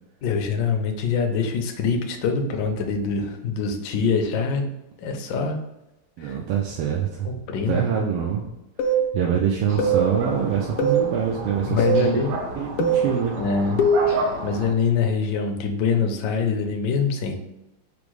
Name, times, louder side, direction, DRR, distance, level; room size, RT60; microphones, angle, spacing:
voice 1, 0.2-4.7 5.0-5.6 6.2-6.4 7.2-7.8 11.6-12.3 13.4-13.8 14.4-17.4, left 5 dB, 70° left, 4 dB, 1.1 m, -24 dB
voice 2, 6.2-7.3 7.7-8.5 9.1-12.2 12.5-13.4, right 8 dB, 90° right, 0 dB, 1.5 m, -25 dB
sound 1, 8.8-9.0 9.8-10.0 10.8-11.0 11.8-12.0 12.8-13.0 13.8-14.1, right 3 dB, 85° left, 1.5 m, -20 dB
sound 2, 9.7-14.7, right 2 dB, 70° right, 0.8 m, -32 dB
5.1 x 2.0 x 4.6 m, 0.91 s
omnidirectional pair, 2.4 m